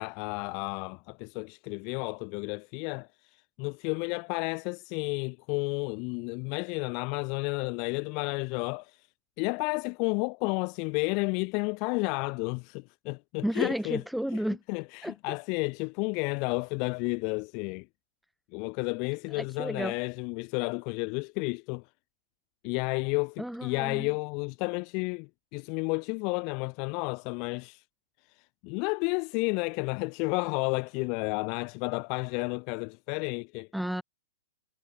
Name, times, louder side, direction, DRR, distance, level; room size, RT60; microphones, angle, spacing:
voice 1, 0.0-9.1 9.4-14.0 14.3-14.4 14.7-17.9 18.5-21.9 22.6-27.8 28.3-33.7, left 34 dB, 45° left, 1.2 m, -32 dB
voice 2, 13.4-14.6 15.0-15.4 19.3-19.9 23.4-24.1 33.7-34.0, equal, ahead, 0.3 m, -32 dB
hypercardioid pair, 120°, 0 cm